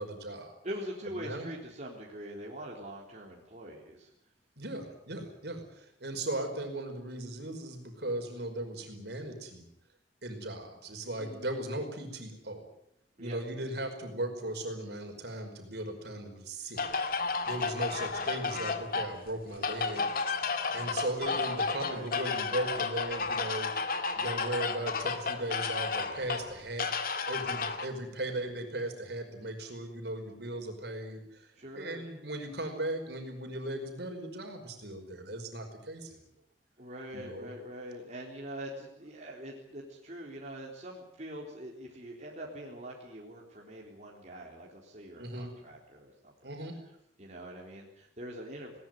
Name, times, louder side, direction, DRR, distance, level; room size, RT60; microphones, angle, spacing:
voice 1, 0.0-0.5 1.1-1.5 4.6-9.7 10.2-12.6 13.2-16.8 17.4-20.1 20.7-26.9 27.3-31.5 31.7-36.2 37.1-37.5 45.2-45.5 46.4-46.7, right 1 dB, 65° right, 5 dB, 5.2 m, -37 dB
voice 2, 0.6-4.1 11.2-11.7 13.2-13.4 21.8-22.1 31.6-32.1 36.8-46.5 47.2-48.8, equal, 40° right, -2 dB, 3.8 m, -43 dB
sound 1, 16.8-27.9, left 4 dB, 55° left, 2.1 m, -32 dB
20.5 x 19.0 x 9.3 m, 0.77 s
head